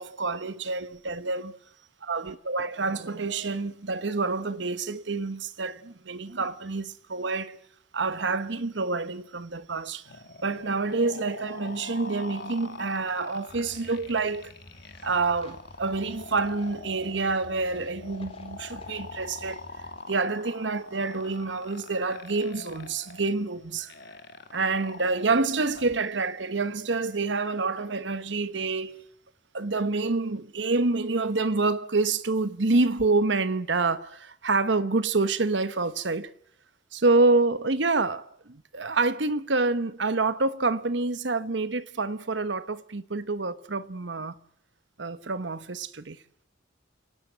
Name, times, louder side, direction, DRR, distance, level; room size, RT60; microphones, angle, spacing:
voice 1, 0.0-1.6 2.0-7.6 7.9-10.1 10.4-14.5 15.0-19.7 20.1-23.9 24.5-29.0 29.5-36.3 36.9-44.4 45.0-46.2, right 3 dB, 70° right, 1.1 m, -27 dB
sound 1, 10.1-26.0, left 3 dB, 60° left, 2.0 m, -44 dB
sound 2, 13.5-20.0, equal, 30° left, 3.9 m, -50 dB
30.0 x 18.0 x 8.0 m
head